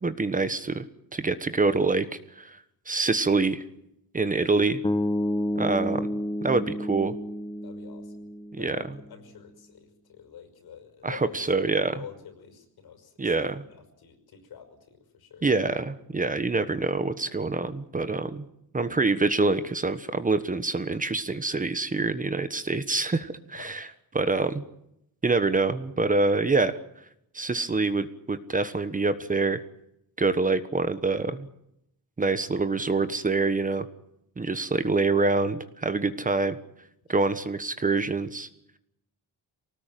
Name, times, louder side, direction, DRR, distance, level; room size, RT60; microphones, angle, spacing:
voice 1, 0.0-0.8 1.1-2.1 2.4-2.6 2.9-3.6 4.1-4.8 5.5-6.0 6.4-7.1 8.5-8.8 11.0-11.9 13.2-13.6 15.4-18.5 18.7-23.8 24.1-24.6 25.2-26.8 27.3-29.6 30.2-31.5 32.2-33.9 34.4-36.6 37.1-38.5, right 3 dB, 20° right, 12 dB, 1.3 m, -25 dB
sound 1, 4.8-9.0, left 1 dB, 15° left, 1.1 m, -30 dB
voice 2, 7.6-8.2 8.6-13.4 13.7-15.5 23.5-23.8 37.1-37.3, left 8 dB, 75° left, 8 dB, 5.8 m, -47 dB
25.0 x 19.0 x 9.3 m, 0.79 s
wide cardioid pair, 150°, 37 cm